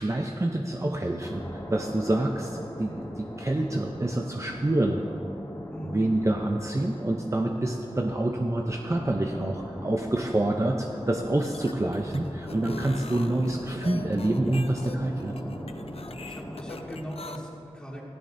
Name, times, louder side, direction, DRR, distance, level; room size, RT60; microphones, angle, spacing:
voice 1, 0.0-5.0 5.8-15.3, right 1 dB, 25° right, 1 dB, 0.7 m, -27 dB
sound 1, 1.2-16.9, left 1 dB, 25° left, 2.2 m, -41 dB
sound 2, 11.3-17.4, left 3 dB, 65° left, 0.6 m, -43 dB
voice 2, 16.2-18.0, equal, 10° left, -5 dB, 2.9 m, -40 dB
17.0 x 14.5 x 2.7 m, 2.6 s
wide cardioid pair, 65°, 11 cm